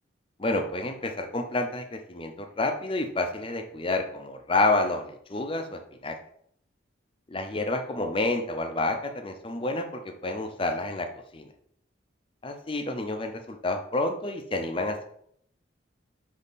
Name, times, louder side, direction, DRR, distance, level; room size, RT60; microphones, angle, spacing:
voice 1, 0.4-6.2 7.3-11.5 12.4-15.1, left 2 dB, 25° left, 6 dB, 0.6 m, -29 dB
5.5 x 5.4 x 4.1 m, 0.69 s
head